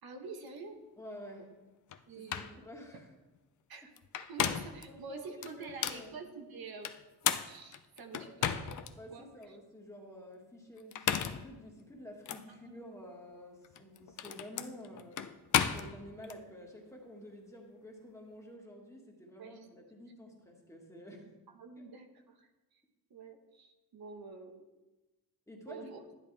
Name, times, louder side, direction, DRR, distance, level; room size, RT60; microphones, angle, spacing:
voice 1, 0.0-0.8 2.1-2.5 3.7-3.9 4.2-6.9 7.4-8.8 9.1-9.6 12.5-13.0 19.4-19.7 21.5-22.5 22.7-22.8 23.1-24.6 25.7-26.0, right 4 dB, 70° right, 5 dB, 1.2 m, -47 dB
voice 2, 1.0-1.6 2.2-3.1 4.9-6.2 8.2-8.3 8.9-15.3 15.7-21.3 21.8-21.9 25.5-25.9, equal, 10° left, -1 dB, 1.7 m, -50 dB
sound 1, 1.9-2.0 2.3-2.6 4.0-4.8 5.4-6.1 6.8-8.9 9.4-9.5 10.8-11.5 12.3-12.4 13.6-16.4, left 9 dB, 50° left, 0.6 m, -34 dB
12.0 x 10.5 x 3.4 m, 1.1 s
wide cardioid pair, 155°, 38 cm